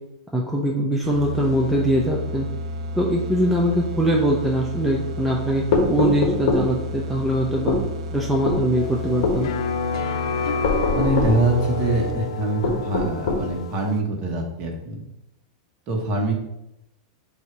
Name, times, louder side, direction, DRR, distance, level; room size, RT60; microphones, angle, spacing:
voice 1, 0.3-2.5 2.9-7.8 8.1-9.5, right 1 dB, 5° right, -2 dB, 0.5 m, -22 dB
sound 1, 1.0-12.4, left 1 dB, 70° right, 0.7 m, -32 dB
sound 2, 5.7-6.7 7.7-7.9 8.5-8.6 9.2-9.4 10.6-11.4 12.6-13.5, left 3 dB, 40° left, 1.6 m, -22 dB
sound 3, 8.7-14.0, left 5 dB, 65° left, 0.7 m, -29 dB
voice 2, 10.9-15.0 15.9-16.3, right 2 dB, 30° right, 1 dB, 1.3 m, -24 dB
7.8 x 2.7 x 4.6 m, 0.87 s
supercardioid pair, 165°, 3 cm